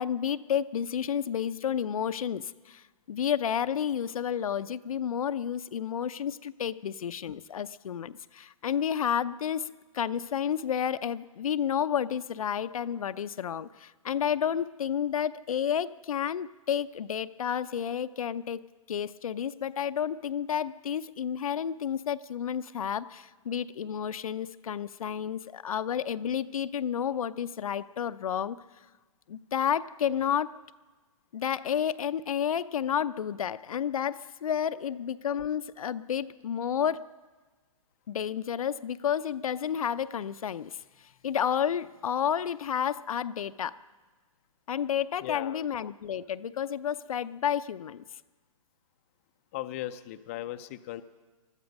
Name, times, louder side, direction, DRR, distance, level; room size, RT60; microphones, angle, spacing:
voice 1, 0.0-18.6 18.9-28.6 29.3-30.6 31.3-37.1 38.1-40.8 41.2-43.8 44.7-48.0, left 8 dB, 75° left, 12 dB, 0.6 m, -31 dB
voice 2, 45.2-45.7 49.5-51.0, left 14 dB, 25° left, 9 dB, 0.4 m, -38 dB
20.5 x 13.0 x 5.3 m, 1.3 s
hypercardioid pair, 160°, 18 cm